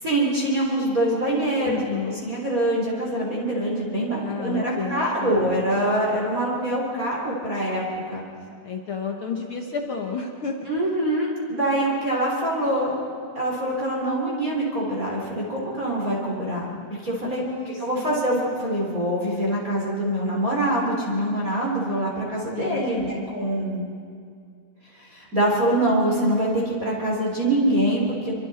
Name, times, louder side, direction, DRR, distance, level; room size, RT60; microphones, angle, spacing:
voice 1, 0.0-1.8 2.1-7.8 8.1-8.2 10.7-13.0 13.4-23.8 24.9-28.3, right 1 dB, 25° right, -4 dB, 3.5 m, -24 dB
voice 2, 1.6-2.2 4.2-5.5 8.6-10.7 17.2-18.2 22.5-23.4, left 5 dB, 80° left, 2 dB, 1.1 m, -32 dB
29.5 x 24.0 x 4.3 m, 2.3 s
omnidirectional pair, 4.3 m